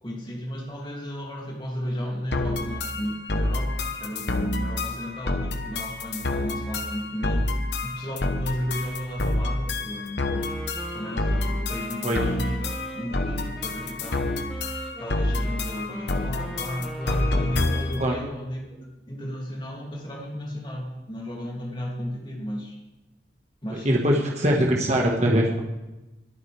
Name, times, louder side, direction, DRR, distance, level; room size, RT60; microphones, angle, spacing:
voice 1, 0.0-10.5 10.9-14.4 15.0-22.8 23.6-24.2, equal, 25° left, -1 dB, 2.6 m, -34 dB
sound 1, 2.3-18.1, left 2 dB, 75° left, 1.1 m, -28 dB
Wind instrument woodwind instrument, 10.2-18.2, equal, ahead, 1.2 m, -40 dB
voice 2, 23.8-25.6, equal, 40° right, -1 dB, 1.6 m, -22 dB
21.5 x 9.1 x 3.4 m, 1.0 s
head